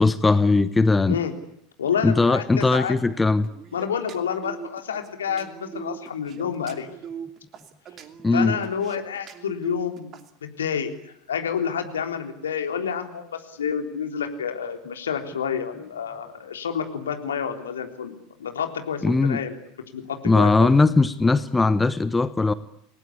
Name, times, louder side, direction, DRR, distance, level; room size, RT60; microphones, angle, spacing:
voice 1, 0.0-1.2 2.0-3.5 8.2-8.5 19.0-19.4 20.2-22.5, left 3 dB, 10° left, 15 dB, 1.1 m, -19 dB
voice 2, 1.8-2.9 3.7-6.9 8.3-10.1 10.6-10.9 11.3-19.6 19.9-20.7, left 7 dB, 70° left, 5 dB, 3.7 m, -29 dB
sound 1, 3.4-10.3, right 7 dB, 35° right, 2.8 m, -39 dB
29.0 x 19.5 x 8.6 m, 0.75 s
figure-of-eight pair, 80°, 0 cm